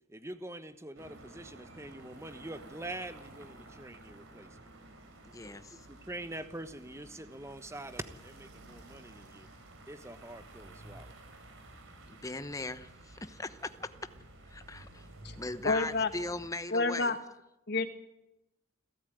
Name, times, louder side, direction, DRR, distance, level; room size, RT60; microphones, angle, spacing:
voice 1, 0.1-4.7 5.4-9.5 9.9-11.2, right 1 dB, 15° right, 11 dB, 1.2 m, -45 dB
sound 1, 1.0-16.5, right 2 dB, 75° right, 4.3 m, -53 dB
voice 2, 5.2-5.8 12.1-13.9 14.5-15.1 15.4-17.2, left 2 dB, 15° left, 11 dB, 0.9 m, -39 dB
voice 3, 15.6-16.1 16.7-17.2 17.7-17.9, left 3 dB, 55° left, 9 dB, 1.8 m, -28 dB
29.0 x 13.0 x 9.3 m, 0.89 s
head